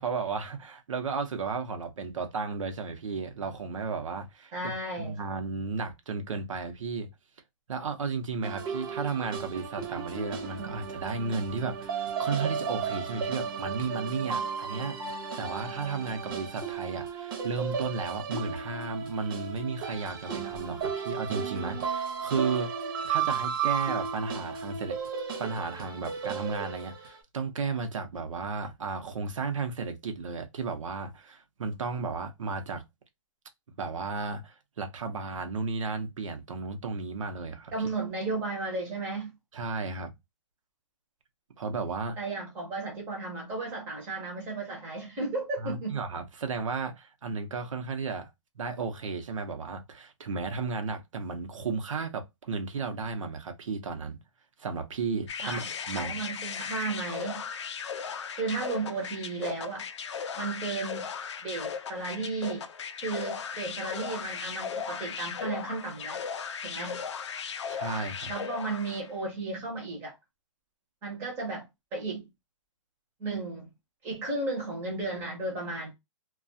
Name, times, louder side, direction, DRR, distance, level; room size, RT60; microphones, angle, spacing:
voice 1, 0.0-7.1 7.7-22.7 23.1-25.0 25.4-32.8 33.8-37.7 39.5-40.1 41.6-42.2 45.6-48.3 48.6-54.2 54.6-56.2 67.7-68.3, right 4 dB, 85° right, 0.7 m, -34 dB
voice 2, 4.5-5.2 37.7-39.3 42.2-46.0 55.4-57.4 58.3-59.8 60.4-61.1 61.4-62.7 62.9-66.2 66.6-67.0 68.3-70.1 71.0-71.7 71.9-72.3 73.2-73.7 74.0-75.9, right 3 dB, 10° right, 0.6 m, -34 dB
sound 1, 8.4-27.2, right 6 dB, 45° right, 0.8 m, -34 dB
sound 2, 55.3-69.1, left 6 dB, 65° left, 0.4 m, -37 dB
2.3 x 2.3 x 2.5 m
hypercardioid pair, 175°, 16 cm